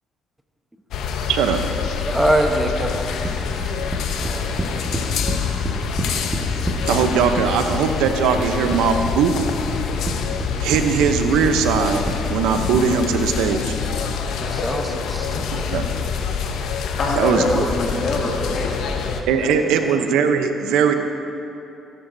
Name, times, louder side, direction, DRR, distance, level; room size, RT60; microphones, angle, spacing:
sound 1, 0.9-19.2, left 6 dB, 80° left, 0.8 m, -26 dB
voice 1, 1.3-1.6 6.9-9.3 10.6-12.0 12.3-13.6 15.5-15.8 17.2-17.6 19.3-20.9, right 6 dB, 90° right, 6 dB, 0.7 m, -19 dB
voice 2, 2.0-3.1 4.2-4.6 14.4-15.7, right 1 dB, 10° right, 4 dB, 0.9 m, -23 dB
sound 2, 2.9-5.4 5.6-7.4 7.7-8.8 9.1-10.1 10.4-10.8 11.1-12.8, right 2 dB, 25° right, 1.5 m, -28 dB
voice 3, 17.0-20.0, left 2 dB, 55° left, -3 dB, 2.3 m, -25 dB
17.0 x 10.0 x 2.7 m, 2.9 s
cardioid pair, 85°, 0 cm